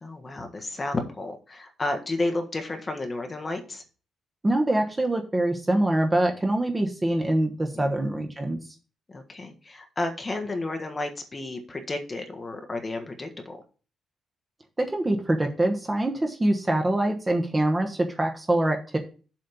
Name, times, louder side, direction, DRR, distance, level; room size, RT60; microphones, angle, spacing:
voice 1, 0.0-3.8 7.7-7.9 9.1-13.6, left 2 dB, 20° left, 5 dB, 1.4 m, -32 dB
voice 2, 4.4-8.6 14.8-19.0, right 1 dB, 15° right, 3 dB, 1.0 m, -24 dB
7.6 x 4.3 x 6.8 m, 0.36 s
cardioid pair, 155°, 0 cm